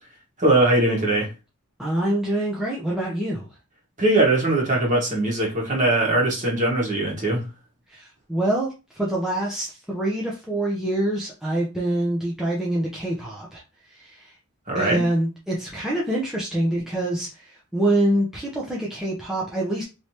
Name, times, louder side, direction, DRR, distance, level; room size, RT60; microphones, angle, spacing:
voice 1, 0.4-1.3 4.0-7.4 14.7-15.0, right 2 dB, 35° right, 1.5 m, -21 dB
voice 2, 1.8-3.5 7.9-13.6 13.9-14.3 14.7-19.8, right 1 dB, ahead, 0.7 m, -25 dB
3.2 x 3.1 x 2.8 m
head